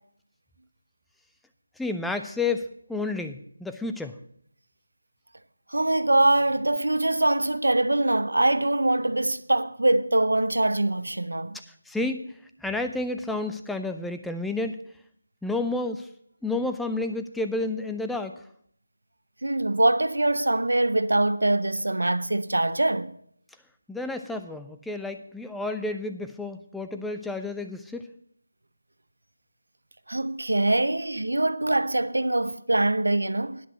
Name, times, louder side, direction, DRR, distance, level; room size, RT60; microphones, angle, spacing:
voice 1, 1.8-4.2 11.9-12.3 12.6-14.8 15.4-16.1 16.4-18.3 23.9-28.1, left 2 dB, ahead, 0.4 m, -30 dB
voice 2, 5.7-11.6 19.4-23.1 30.1-33.7, right 2 dB, 90° right, 0.7 m, -23 dB
10.0 x 6.0 x 7.7 m
figure-of-eight pair, 165°, 0 cm